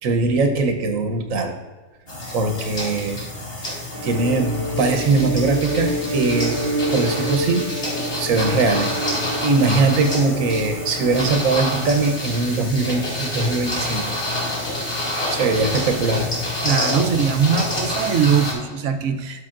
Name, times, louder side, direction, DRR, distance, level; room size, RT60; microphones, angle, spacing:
voice 1, 0.0-1.6 2.3-3.3 4.0-6.6 6.9-7.8 8.1-14.2 14.4-14.5 15.3-16.2, right 3 dB, 90° right, 6 dB, 1.3 m, -21 dB
sound 1, 2.1-18.5, left 1 dB, 50° left, 2.5 m, -28 dB
sound 2, 3.9-11.6, right 1 dB, 30° right, 1.1 m, -28 dB
voice 2, 16.6-19.5, right 6 dB, 70° right, 7 dB, 1.0 m, -21 dB
11.5 x 6.6 x 2.5 m, 1.3 s
omnidirectional pair, 1.3 m